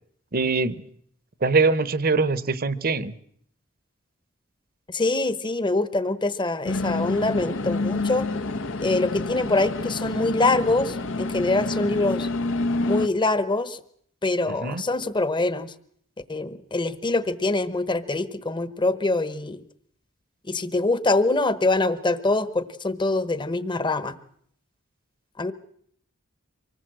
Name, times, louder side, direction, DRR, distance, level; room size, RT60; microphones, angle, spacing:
voice 1, 0.3-0.8 1.4-3.1 14.6-14.8, right 4 dB, 45° right, 16 dB, 1.0 m, -22 dB
voice 2, 4.9-8.3 8.8-12.3 12.9-13.8 14.2-15.7 16.3-19.6 20.5-24.2 25.4-25.5, left 2 dB, 25° left, 14 dB, 1.1 m, -24 dB
sound 1, 6.6-13.1, left 2 dB, 65° left, 1.1 m, -28 dB
25.0 x 19.0 x 7.7 m, 0.66 s
head